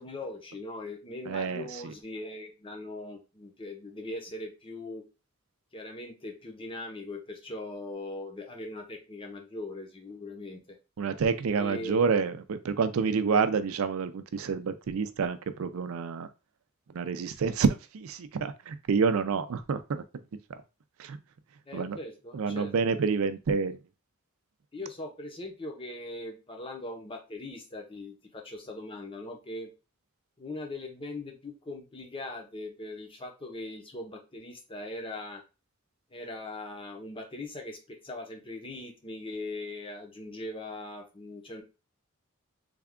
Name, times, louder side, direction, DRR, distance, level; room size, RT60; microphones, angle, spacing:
voice 1, 0.0-5.0 5.7-10.8 11.5-12.0 21.7-22.9 24.7-29.7 30.4-35.4 36.1-41.6, left 2 dB, 25° left, 2 dB, 0.8 m, -40 dB
voice 2, 1.3-1.9 11.0-16.3 16.9-20.0 20.5-20.6 21.0-21.2 21.7-22.0 22.3-23.8, right 5 dB, 80° right, 11 dB, 0.4 m, -28 dB
3.4 x 2.3 x 3.6 m, 0.29 s
head